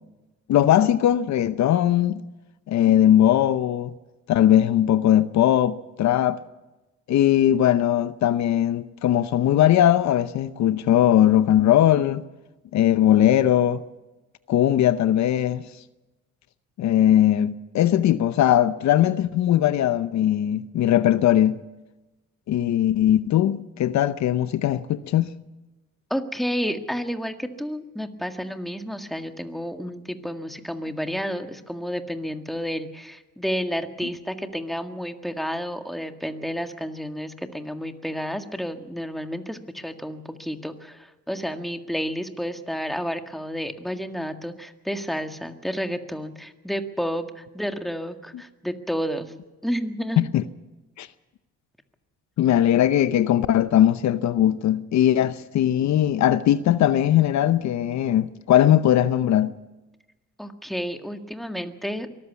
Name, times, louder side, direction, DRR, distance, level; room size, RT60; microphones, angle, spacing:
voice 1, 0.5-2.2 2.7-3.9 4.3-6.4 7.1-12.2 12.7-13.8 14.5-15.6 16.8-21.6 22.5-25.3 50.2-50.4 51.0-51.1 52.4-59.5, left 11 dB, 70° left, 0.8 m, -19 dB
voice 2, 26.1-49.3 49.6-50.2 60.4-62.1, equal, ahead, 1.8 m, -31 dB
24.0 x 14.0 x 8.3 m
cardioid pair, 85°, 29 cm